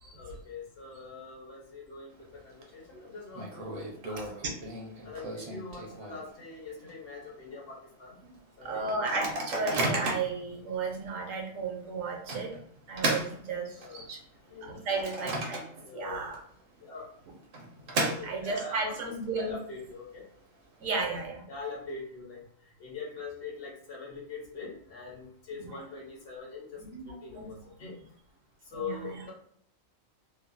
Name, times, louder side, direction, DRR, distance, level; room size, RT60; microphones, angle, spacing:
voice 1, 0.1-4.5 5.0-8.2 8.6-8.9 13.8-14.1 14.5-14.9 15.8-16.2 16.8-17.1 17.9-20.2 21.5-22.4 22.8-26.8 27.2-28.1 28.7-29.3, left 4 dB, 55° left, -2 dB, 0.8 m, -42 dB
Microwave oven, 2.1-2.6 2.9-3.0 3.3-6.4 6.9-7.0 7.2-7.5 8.0-8.1 8.9-10.4 11.0-11.2 12.3-14.1 14.6-16.1 16.3-16.4 17.3-18.7, right 2 dB, 55° right, 0.7 m, -34 dB
voice 2, 8.6-12.5 12.9-14.2 14.6-15.6 15.9-16.4 18.2-19.5 20.8-21.4 26.8-27.5 28.7-29.3, right 4 dB, 75° right, 1 dB, 1.1 m, -34 dB
3.0 x 2.1 x 2.4 m, 0.66 s
omnidirectional pair, 1.4 m